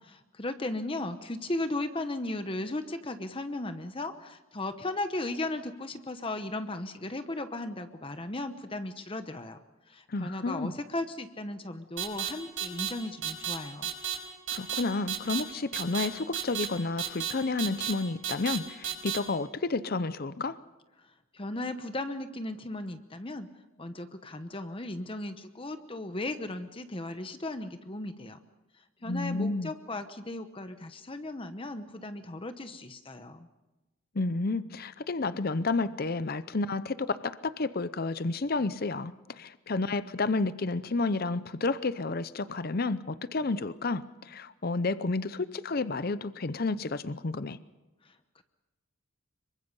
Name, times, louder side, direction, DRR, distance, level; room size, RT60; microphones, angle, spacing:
voice 1, 0.3-9.6 9.9-13.9 21.3-23.5 23.8-28.4 29.0-33.5 48.0-48.4, left 2 dB, 25° left, 9 dB, 1.0 m, -36 dB
voice 2, 10.1-10.7 14.5-20.6 29.0-29.7 34.1-47.6, left 3 dB, 45° left, 15 dB, 0.7 m, -31 dB
sound 1, 12.0-12.3 12.6-12.9 13.2-13.5 13.8-14.1 14.5-14.8 15.1-15.4 15.7-16.1 16.3-16.7 17.0-17.3 17.6-17.9 18.2-18.6 18.8-19.2, right 10 dB, 75° right, 4.6 m, -31 dB
26.0 x 23.5 x 5.5 m, 1.1 s
head